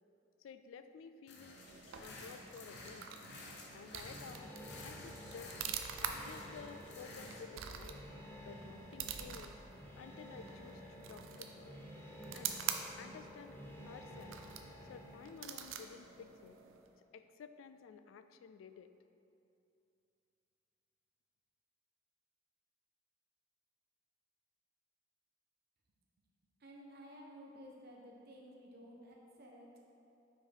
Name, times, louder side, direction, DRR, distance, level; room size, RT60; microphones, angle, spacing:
voice 1, 0.4-1.6 2.0-3.1 3.7-4.5 4.8-5.6 6.0-8.0 8.4-9.6 9.9-10.8 11.1-11.8 12.3-12.6 13.0-14.4 14.8-16.6 17.0-18.9, left 6 dB, 85° left, 11 dB, 0.3 m, -53 dB
sound 1, 1.3-7.4, left 2 dB, 60° left, 0.9 m, -52 dB
sound 2, 1.4-17.0, right 8 dB, 90° right, 0.5 m, -47 dB
sound 3, 4.0-15.3, left 1 dB, 10° left, 0.8 m, -52 dB
voice 2, 26.6-29.8, equal, 55° right, -2 dB, 1.0 m, -54 dB
6.1 x 4.8 x 4.6 m, 2.7 s
head